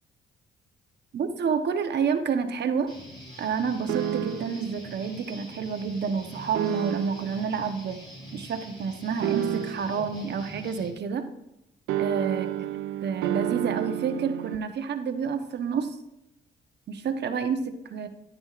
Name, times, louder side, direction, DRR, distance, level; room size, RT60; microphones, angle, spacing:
voice 1, 1.1-2.9 3.4-8.0 8.3-11.2 12.0-12.5 13.0-16.0 16.9-18.1, right 6 dB, 60° right, 7 dB, 1.1 m, -29 dB
Guitar, 2.9-10.9, equal, 25° left, 3.1 m, -45 dB
sound 1, 3.9-4.7 6.5-7.4 9.2-10.1 11.9-14.6, right 11 dB, 85° right, 0.5 m, -30 dB
11.5 x 8.8 x 2.5 m, 0.87 s
cardioid pair, 90°, 20 cm